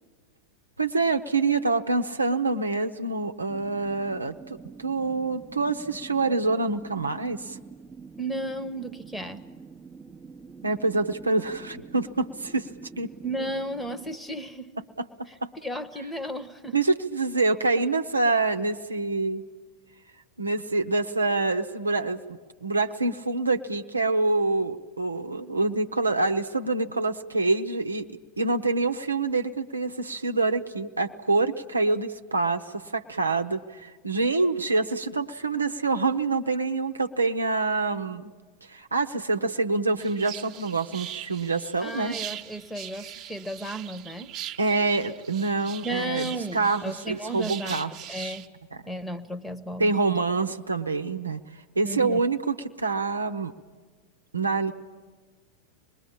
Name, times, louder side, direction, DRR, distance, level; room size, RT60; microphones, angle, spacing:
voice 1, 0.8-7.6 10.6-12.7 13.0-13.1 15.0-15.1 15.4-15.5 16.7-19.4 20.4-28.1 28.4-38.3 38.7-42.2 44.6-47.9 49.8-51.4 51.7-53.5 54.3-54.7, right 3 dB, 80° right, 6 dB, 0.8 m, -26 dB
sound 1, 3.5-14.2, right 5 dB, 15° right, 0.8 m, -46 dB
voice 2, 8.2-9.4 13.2-14.7 15.6-16.8 41.8-44.3 45.8-48.5 48.9-49.9 51.8-52.2, right 1 dB, 5° left, 13 dB, 1.1 m, -34 dB
sound 2, 40.0-48.5, right 11 dB, 35° right, 1.2 m, -41 dB
25.5 x 20.5 x 8.6 m, 1.4 s
figure-of-eight pair, 90°, 0 cm